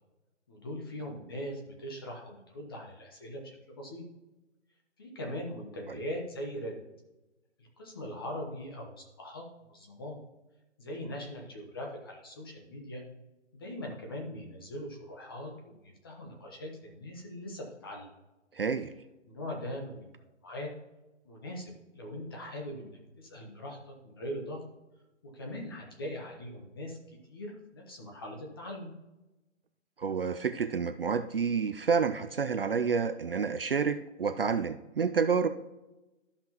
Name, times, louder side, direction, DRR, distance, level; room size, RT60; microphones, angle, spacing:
voice 1, 0.5-4.0 5.0-6.8 7.6-9.4 9.7-10.2 10.8-13.0 13.5-18.1 19.3-20.1 20.4-20.7 21.2-24.6 25.2-27.0 27.3-28.9, equal, 20° left, 1 dB, 0.9 m, -41 dB
voice 2, 18.5-18.9 30.0-35.5, right 6 dB, 50° right, 10 dB, 0.4 m, -29 dB
13.0 x 5.8 x 2.9 m, 1.0 s
hypercardioid pair, 170°, 37 cm